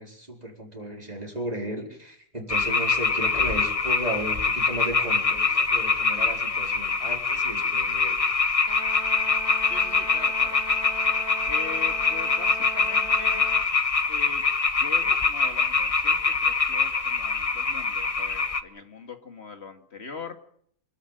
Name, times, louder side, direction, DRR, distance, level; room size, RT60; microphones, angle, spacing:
voice 1, 0.0-8.2, right 1 dB, 25° right, 0 dB, 4.8 m, -35 dB
sound 1, 2.5-18.6, left 4 dB, 30° left, 0.9 m, -24 dB
Trumpet, 8.7-13.7, right 5 dB, 80° right, 2.6 m, -40 dB
voice 2, 9.6-10.6 11.4-13.5 14.1-14.4 14.7-20.4, left 5 dB, 45° left, 6 dB, 2.3 m, -42 dB
26.0 x 12.5 x 9.2 m, 0.66 s
omnidirectional pair, 1.5 m